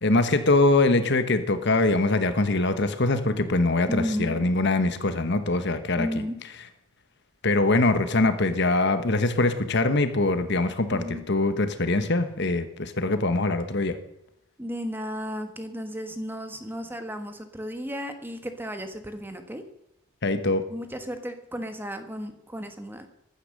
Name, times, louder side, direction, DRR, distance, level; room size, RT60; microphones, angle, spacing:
voice 1, 0.0-6.1 7.4-14.0 20.2-20.6, left 2 dB, 50° left, 10 dB, 1.2 m, -23 dB
voice 2, 3.9-4.5 5.9-6.4 10.9-11.2 14.6-19.6 20.7-23.1, equal, 10° right, 7 dB, 1.4 m, -33 dB
15.0 x 11.5 x 6.6 m, 0.84 s
head